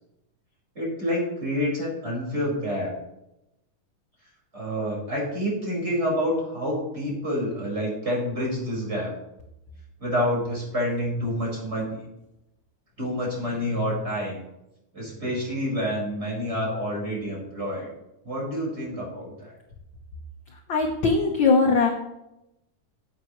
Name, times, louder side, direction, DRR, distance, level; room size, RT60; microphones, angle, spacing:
voice 1, 0.8-2.9 4.5-9.1 10.0-12.0 13.0-14.4 14.9-17.9 18.2-19.5, equal, 20° right, -4 dB, 5.2 m, -28 dB
voice 2, 20.7-21.9, left 4 dB, 60° left, 1 dB, 1.2 m, -20 dB
17.0 x 8.5 x 3.1 m, 0.88 s
omnidirectional pair, 3.7 m